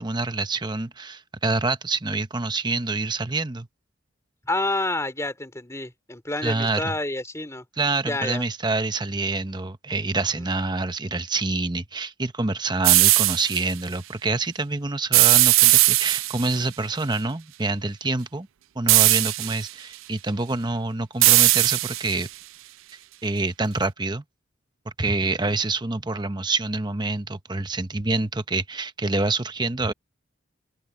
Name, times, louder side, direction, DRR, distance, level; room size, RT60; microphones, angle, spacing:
voice 1, 0.0-3.7 6.4-6.9 7.8-18.5 18.7-22.3 23.2-24.2 25.0-29.9, right 3 dB, 20° right, 1.0 m, -26 dB
voice 2, 4.4-7.6 8.0-8.4 10.4-10.5 19.4-19.5 25.4-25.5, left 2 dB, 15° left, 3.5 m, -29 dB
sound 1, 12.8-13.6 15.1-16.6 18.9-19.7 21.2-22.2, right 19 dB, 85° right, 0.4 m, -18 dB
open air
head